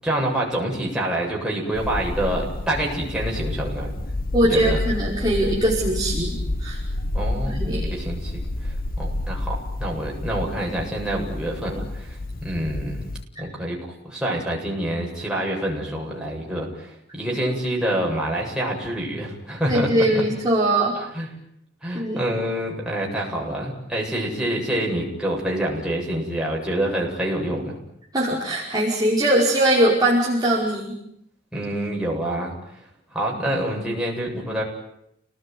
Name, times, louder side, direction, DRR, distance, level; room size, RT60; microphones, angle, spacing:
voice 1, 0.0-3.9 4.4-4.8 7.1-13.1 13.4-13.8 14.1-20.2 21.0-21.3 21.8-27.8 31.5-32.5 33.1-34.6, right 1 dB, 5° right, -3 dB, 7.9 m, -27 dB
sound 1, 1.7-13.2, left 2 dB, 50° left, 1.3 m, -29 dB
voice 2, 4.3-6.8 7.4-7.9 19.7-20.9 21.9-22.2 28.1-30.9, right 1 dB, 20° right, -5 dB, 5.2 m, -21 dB
30.0 x 19.5 x 9.5 m, 0.76 s
head